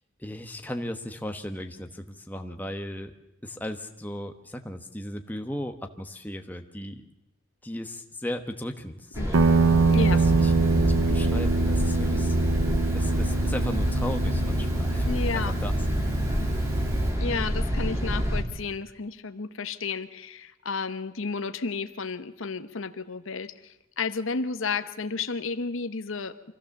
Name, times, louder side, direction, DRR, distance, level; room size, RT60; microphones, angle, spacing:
voice 1, 0.2-3.1 3.4-7.1 7.6-9.4 10.4-10.5 10.8-12.4 12.9-15.1 15.3-15.7, left 1 dB, 10° left, 5 dB, 1.1 m, -36 dB
sound 1, 9.1-18.4, equal, 15° right, 2.5 m, -27 dB
voice 2, 9.2-9.5 9.9-10.3 15.0-15.6 16.3-16.6 17.2-26.5, left 4 dB, 70° left, 11 dB, 0.9 m, -32 dB
Guitar, 9.3-17.2, right 4 dB, 80° right, 0.8 m, -25 dB
24.5 x 15.5 x 7.2 m, 0.92 s
head